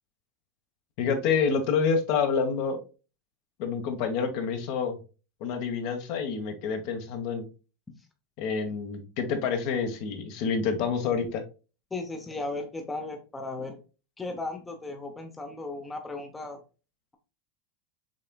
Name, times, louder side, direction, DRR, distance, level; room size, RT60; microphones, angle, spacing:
voice 1, 1.0-2.8 3.6-5.0 5.4-7.5 8.4-11.4, left 5 dB, 55° left, 6 dB, 1.2 m, -28 dB
voice 2, 11.9-13.8 14.2-16.6, left 2 dB, 10° left, 4 dB, 0.7 m, -36 dB
6.4 x 3.6 x 2.3 m, 0.33 s
supercardioid pair, 135°, 0 cm